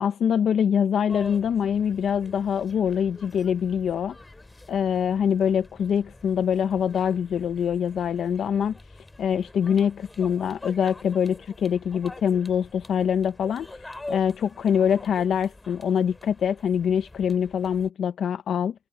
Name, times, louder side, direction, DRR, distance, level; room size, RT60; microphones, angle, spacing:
voice 1, 0.0-4.2 4.7-8.8 9.2-18.7, left 8 dB, 60° left, 0.8 m, -24 dB
sound 1, 1.1-17.9, left 2 dB, 15° left, 2.9 m, -45 dB
cardioid pair, 90°, 0 cm